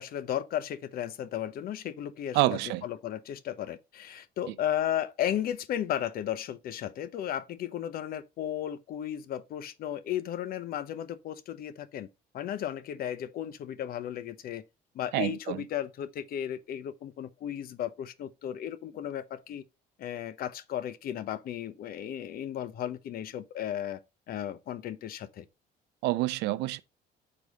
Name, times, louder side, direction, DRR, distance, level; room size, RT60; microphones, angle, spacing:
voice 1, 0.0-12.1 12.3-14.6 14.9-19.6 20.0-24.0 24.3-25.4, left 10 dB, 60° left, 0.8 m, -34 dB
voice 2, 2.3-2.8 15.1-15.6 26.0-26.8, right 18 dB, 90° right, 0.5 m, -27 dB
6.9 x 4.8 x 4.0 m
cardioid pair, 110°, 17 cm